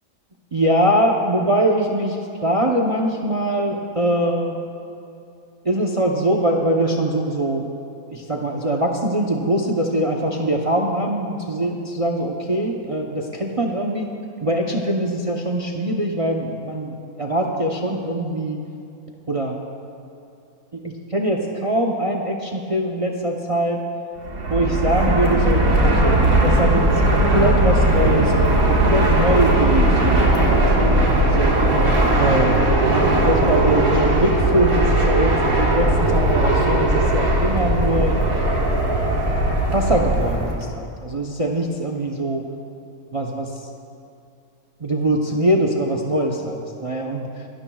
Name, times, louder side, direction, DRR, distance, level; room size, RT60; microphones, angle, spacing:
voice 1, 0.5-4.6 5.6-7.6 8.1-14.1 14.4-18.6 19.3-19.6 20.7-23.8 24.5-31.6 32.2-38.2 39.7-42.4 43.1-43.5 44.8-47.3, right 1 dB, 35° right, 1 dB, 0.6 m, -22 dB
Fixed-wing aircraft airplane, 24.2-40.6, right 1 dB, 65° right, 2.1 m, -18 dB
27.5 x 12.0 x 2.3 m, 2.7 s
omnidirectional pair, 1.6 m